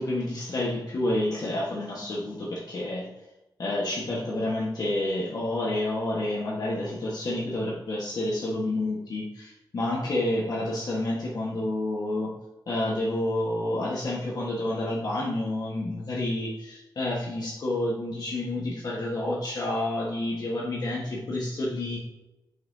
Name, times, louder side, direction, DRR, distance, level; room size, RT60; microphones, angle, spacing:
voice 1, 0.0-3.1 3.6-12.3 12.7-22.0, left 1 dB, 60° left, -5 dB, 1.5 m, -29 dB
8.6 x 5.8 x 2.8 m, 0.99 s
wide cardioid pair, 135°, 8 cm